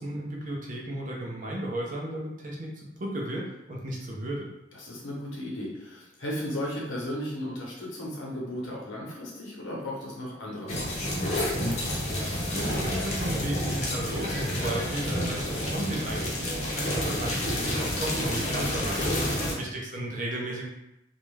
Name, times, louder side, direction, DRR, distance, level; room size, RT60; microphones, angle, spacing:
voice 1, 0.0-4.5 12.4-19.0 19.6-20.7, right 1 dB, 45° right, -2 dB, 0.6 m, -34 dB
voice 2, 4.7-11.3 19.2-19.6, left 1 dB, 85° left, -3 dB, 0.8 m, -35 dB
sound 1, 10.7-19.5, left 1 dB, 35° left, 0.6 m, -29 dB
2.4 x 2.2 x 3.1 m, 0.89 s
head